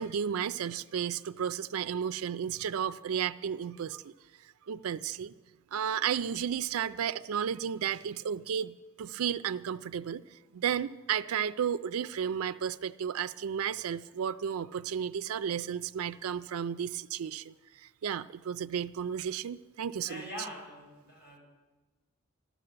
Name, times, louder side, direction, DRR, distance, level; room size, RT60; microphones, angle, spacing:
voice 1, 0.0-4.1 4.7-5.3 5.7-20.3, right 8 dB, 90° right, 12 dB, 0.4 m, -33 dB
voice 2, 20.1-21.4, left 1 dB, 50° left, -2 dB, 6.6 m, -43 dB
13.0 x 12.0 x 7.8 m, 1.2 s
head